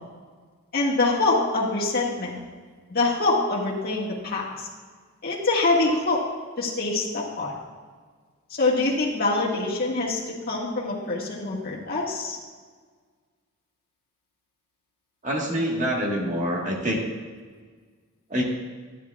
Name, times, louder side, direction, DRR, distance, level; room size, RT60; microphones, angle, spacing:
voice 1, 0.7-2.3 2.9-4.7 5.2-6.2 6.6-7.5 8.6-12.4, left 3 dB, 45° left, -4 dB, 1.7 m, -25 dB
voice 2, 15.2-17.0 18.3-18.4, equal, 35° right, -2 dB, 1.4 m, -26 dB
12.0 x 10.0 x 2.4 m, 1.5 s
head